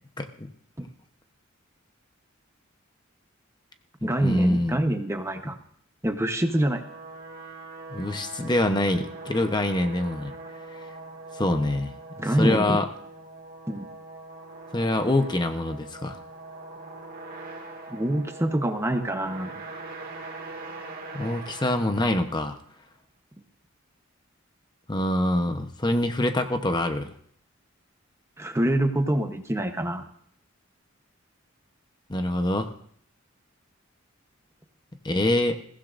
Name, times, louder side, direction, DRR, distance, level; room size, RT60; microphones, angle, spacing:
voice 1, 0.2-0.5 4.2-4.8 7.9-10.3 11.3-11.9 12.4-12.9 14.7-16.2 21.1-22.6 24.9-27.1 32.1-32.7 35.0-35.6, left 1 dB, 20° left, 6 dB, 0.9 m, -25 dB
voice 2, 4.0-5.6 6.0-6.8 12.2-12.8 13.7-13.9 17.9-19.6 28.4-30.0, right 1 dB, 15° right, 6 dB, 0.9 m, -26 dB
sound 1, 6.3-22.6, right 3 dB, 45° right, 2.1 m, -42 dB
21.5 x 15.5 x 2.6 m, 0.63 s
head